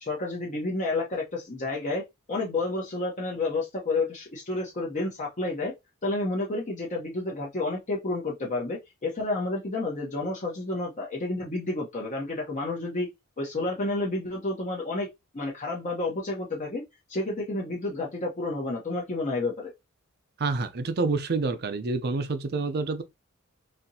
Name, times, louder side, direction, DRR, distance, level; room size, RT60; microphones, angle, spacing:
voice 1, 0.0-5.7 6.0-13.1 13.4-15.1 15.3-16.8 17.1-19.7, left 2 dB, 35° left, 0.8 m, -30 dB
voice 2, 20.4-23.0, right 3 dB, 50° right, 0.6 m, -28 dB
4.2 x 2.8 x 2.7 m
head